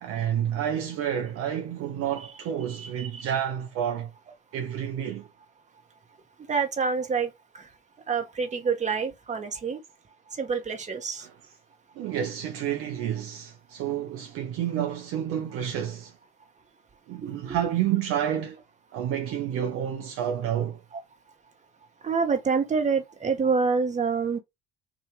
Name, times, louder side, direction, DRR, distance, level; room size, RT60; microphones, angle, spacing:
voice 1, 0.0-4.1 4.5-5.3 11.2-11.3 12.0-16.1 17.1-18.6 18.9-20.8, right 10 dB, 50° right, 0.6 m, -29 dB
voice 2, 2.8-3.3 6.5-7.7 8.1-9.8 10.3-11.3 17.2-17.6 20.9-21.0 22.0-24.4, right 5 dB, 25° right, 1.0 m, -27 dB
2.7 x 2.4 x 3.2 m
hypercardioid pair, 65°, 29 cm